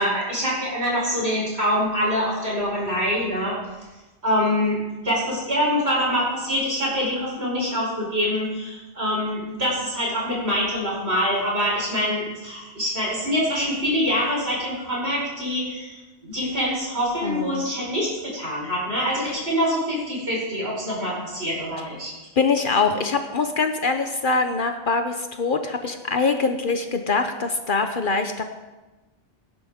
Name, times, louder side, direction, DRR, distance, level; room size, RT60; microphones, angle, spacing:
voice 1, 0.0-3.5 4.2-22.1, equal, 75° right, -5 dB, 5.2 m, -25 dB
voice 2, 17.2-17.6 22.4-28.4, left 4 dB, 55° left, 6 dB, 0.9 m, -23 dB
18.0 x 10.5 x 3.6 m, 1.1 s
omnidirectional pair, 1.1 m